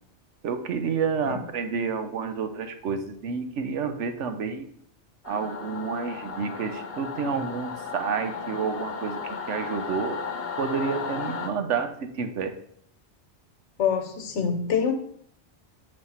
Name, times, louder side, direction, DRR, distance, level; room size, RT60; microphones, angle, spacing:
voice 1, 0.4-4.6 5.2-9.2 9.5-10.2 10.6-12.5, right 6 dB, 85° right, 8 dB, 1.1 m, -29 dB
Singing / Musical instrument, 5.2-11.5, left 5 dB, 60° left, 1.0 m, -35 dB
voice 2, 13.8-14.9, left 7 dB, 80° left, 6 dB, 1.2 m, -25 dB
7.9 x 3.2 x 5.5 m, 0.65 s
omnidirectional pair, 1.2 m